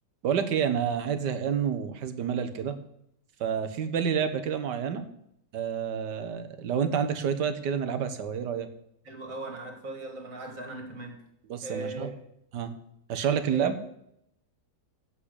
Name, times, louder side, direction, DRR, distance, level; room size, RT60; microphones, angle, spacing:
voice 1, 0.2-2.8 3.4-5.0 5.5-8.7 11.5-12.1 12.5-12.7 13.1-13.7, right 7 dB, 75° right, 10 dB, 1.7 m, -29 dB
voice 2, 9.0-11.2 11.6-12.2 13.5-13.7, right 2 dB, 50° right, 3 dB, 2.8 m, -38 dB
8.7 x 7.5 x 8.2 m, 0.76 s
omnidirectional pair, 1.9 m